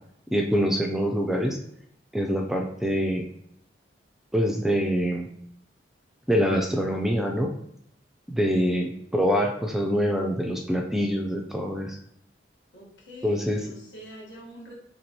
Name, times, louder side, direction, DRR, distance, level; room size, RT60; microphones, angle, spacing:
voice 1, 0.3-1.6 2.1-3.2 4.3-5.3 6.3-7.5 8.3-12.0 13.2-13.6, equal, ahead, 2 dB, 0.3 m, -25 dB
voice 2, 12.7-14.7, equal, 80° left, -3 dB, 1.3 m, -44 dB
4.5 x 2.9 x 2.8 m, 0.73 s
head